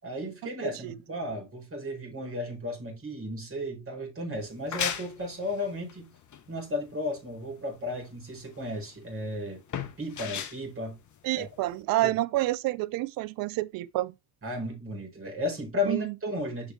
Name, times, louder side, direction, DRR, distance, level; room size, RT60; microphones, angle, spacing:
voice 1, 0.0-6.1 6.5-9.6 10.0-11.0 11.4-11.5 12.0-12.1 14.4-16.7, left 1 dB, 25° right, 4.6 m, -34 dB
voice 2, 0.6-1.0 11.2-14.1 15.9-16.1, right 17 dB, 45° right, 0.6 m, -29 dB
sound 1, 4.4-11.8, left 8 dB, 35° left, 1.2 m, -38 dB
7.4 x 6.4 x 2.8 m
figure-of-eight pair, 50°, 50 cm